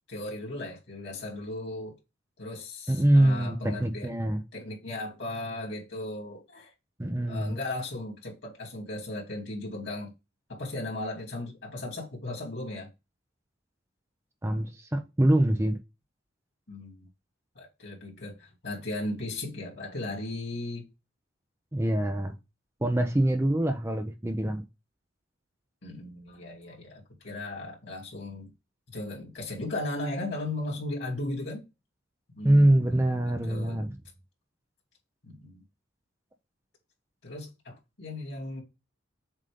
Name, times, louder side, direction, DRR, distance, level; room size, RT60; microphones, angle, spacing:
voice 1, 0.1-2.0 2.4-4.1 4.5-6.7 7.3-10.1 10.5-12.9 16.7-17.1 17.5-20.8 25.8-28.5 28.9-31.6 32.3-32.9 33.2-33.8 35.2-35.6 37.2-38.6, left 2 dB, 60° left, 2.8 m, -36 dB
voice 2, 2.9-4.4 7.0-7.6 14.4-15.8 21.7-22.3 22.8-24.6 32.4-33.9, right 1 dB, 15° right, 0.6 m, -24 dB
7.4 x 2.7 x 5.0 m
head